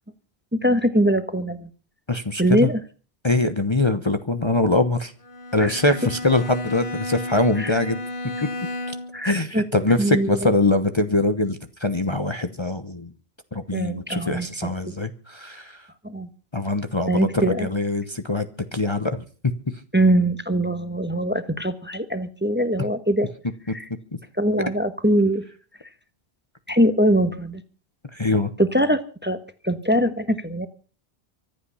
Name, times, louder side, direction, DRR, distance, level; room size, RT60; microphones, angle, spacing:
voice 1, 0.5-1.7 2.4-2.8 5.6-5.9 7.6-7.8 9.1-9.6 10.0-10.5 13.7-14.7 16.0-16.3 17.1-17.7 19.9-23.3 23.7-23.9 24.4-25.4 26.7-27.6 28.6-29.4 29.6-30.7, right 1 dB, 10° right, 10 dB, 1.2 m, -22 dB
voice 2, 2.1-2.7 3.2-5.1 5.5-8.0 8.4-8.5 9.2-13.1 13.5-15.8 16.5-18.5 18.7-19.5 23.7-23.8 28.1-28.5, left 2 dB, 25° left, 8 dB, 1.0 m, -23 dB
Bowed string instrument, 5.2-9.3, left 1 dB, 55° left, 1.6 m, -33 dB
24.5 x 8.6 x 5.6 m, 0.39 s
omnidirectional pair, 1.1 m